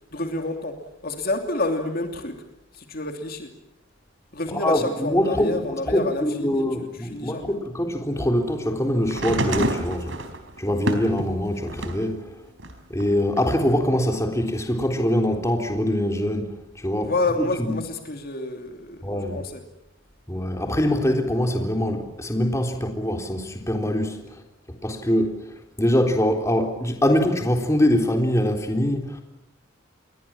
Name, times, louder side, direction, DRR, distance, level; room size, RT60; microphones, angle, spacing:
voice 1, 0.1-2.4 2.7-3.5 4.3-6.6 7.0-7.5 17.0-19.6, left 2 dB, 45° left, 2.9 m, -29 dB
voice 2, 4.5-10.2 10.6-12.3 12.9-17.1 17.4-17.8 19.0-19.4 20.3-24.4 24.8-25.4 25.8-29.2, left 1 dB, 15° left, 3.8 m, -23 dB
sound 1, 9.0-12.1 12.6-13.7 14.7-14.8, right 1 dB, 70° right, 4.3 m, -29 dB
29.0 x 23.0 x 7.5 m
head